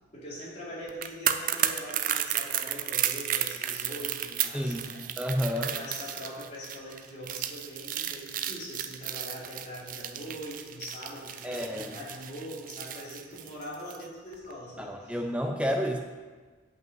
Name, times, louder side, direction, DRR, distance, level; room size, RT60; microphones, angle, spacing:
voice 1, 0.1-5.1 5.5-15.2, equal, 35° left, -7 dB, 2.9 m, -42 dB
sound 1, 0.9-14.0 14.3-14.5, right 10 dB, 45° right, 0.4 m, -33 dB
voice 2, 4.5-4.9 5.2-5.7 11.4-11.9 14.8-16.0, equal, 5° right, 2 dB, 0.7 m, -30 dB
8.1 x 5.5 x 7.5 m, 1.4 s
head